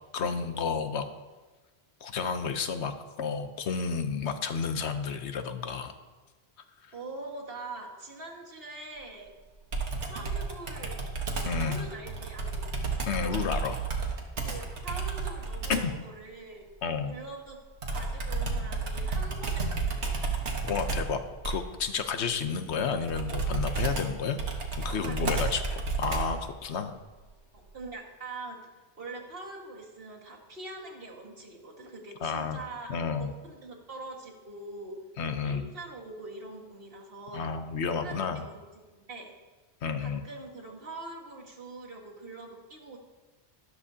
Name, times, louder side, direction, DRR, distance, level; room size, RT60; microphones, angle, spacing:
voice 1, 0.1-1.0 2.0-5.9 6.8-6.9 11.4-11.9 13.1-13.8 14.4-14.5 15.7-15.9 16.8-17.1 20.6-24.4 24.7-25.6 26.0-27.0 32.2-32.6 32.9-33.3 35.2-35.7 37.3-38.4 39.8-40.3, left 6 dB, 75° left, 8 dB, 1.1 m, -31 dB
voice 2, 6.9-9.3 10.1-10.9 11.6-12.7 14.5-16.7 17.1-17.6 17.9-20.3 24.8-25.5 27.5-28.6 29.0-35.0 35.4-37.5 37.9-39.3 40.0-43.0, right 2 dB, 55° right, -1 dB, 1.9 m, -43 dB
Computer keyboard, 9.7-16.0 17.8-26.5, right 4 dB, 80° right, 1.6 m, -32 dB
12.5 x 12.5 x 2.8 m, 1.3 s
omnidirectional pair, 1.1 m